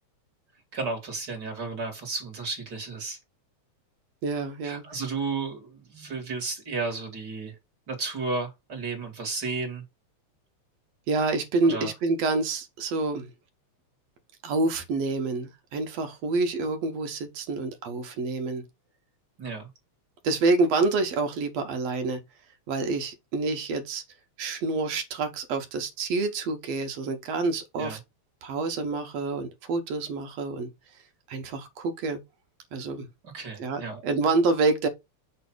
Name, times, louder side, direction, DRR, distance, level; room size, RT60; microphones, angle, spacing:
voice 1, 0.7-3.2 4.6-7.6 7.9-9.8 11.6-11.9 19.4-19.7 27.8-28.0 33.2-34.0, right 4 dB, 35° right, 2.6 m, -33 dB
voice 2, 4.2-4.8 11.1-13.3 14.4-18.6 20.2-22.2 22.7-24.0 24.4-28.0 28.4-30.7 31.3-32.2 32.7-33.1 33.6-34.9, right 3 dB, 65° right, 2.2 m, -27 dB
6.8 x 3.3 x 6.0 m
omnidirectional pair, 3.3 m